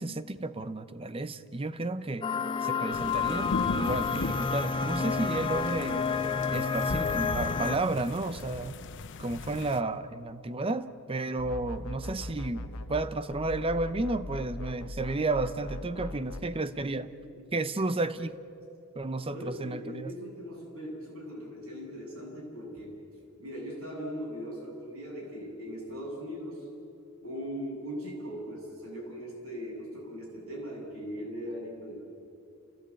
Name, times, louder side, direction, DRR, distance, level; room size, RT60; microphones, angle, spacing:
voice 1, 0.0-2.3 2.6-6.1 6.5-8.8 9.2-17.1 17.5-18.4 19.0-20.1, right 2 dB, 25° right, 13 dB, 0.7 m, -32 dB
sound 1, 2.2-7.8, left 5 dB, 25° left, 0.5 m, -30 dB
sound 2, 2.9-9.8, left 3 dB, 55° left, 0.7 m, -37 dB
sound 3, 11.4-13.1 13.3-16.4, left 1 dB, 75° left, 1.2 m, -40 dB
voice 2, 19.3-22.9 23.4-26.6 27.2-32.0, equal, 65° right, -2 dB, 7.8 m, -39 dB
29.0 x 16.5 x 8.4 m, 2.7 s
head